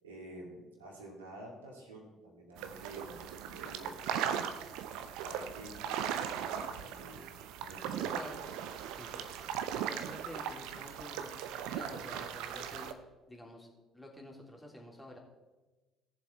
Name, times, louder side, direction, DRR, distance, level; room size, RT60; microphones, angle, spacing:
voice 1, 0.0-4.4 4.9-8.1, right 1 dB, 80° right, -1 dB, 2.2 m, -50 dB
sound 1, 2.6-12.9, right 8 dB, 65° right, 0.6 m, -38 dB
voice 2, 7.9-8.4 9.0-9.5 9.8-11.3 11.7-13.0 13.3-13.7 13.9-15.2, left 1 dB, 10° left, -2 dB, 3.1 m, -49 dB
17.0 x 7.2 x 4.2 m, 1.2 s
figure-of-eight pair, 50°, 0 cm